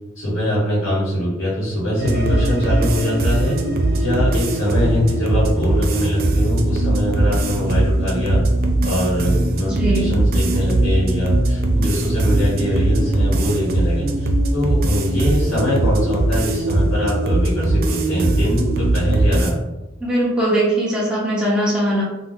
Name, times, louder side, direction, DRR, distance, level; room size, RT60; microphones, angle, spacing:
voice 1, 0.1-3.6 3.9-8.4 8.8-19.6, equal, 90° left, -9 dB, 1.2 m, -22 dB
sound 1, 2.0-19.5, right 2 dB, 50° right, 0.3 m, -20 dB
voice 2, 9.7-10.1 20.0-22.0, right 1 dB, 5° right, -7 dB, 0.6 m, -20 dB
2.6 x 2.1 x 3.5 m, 1.1 s
head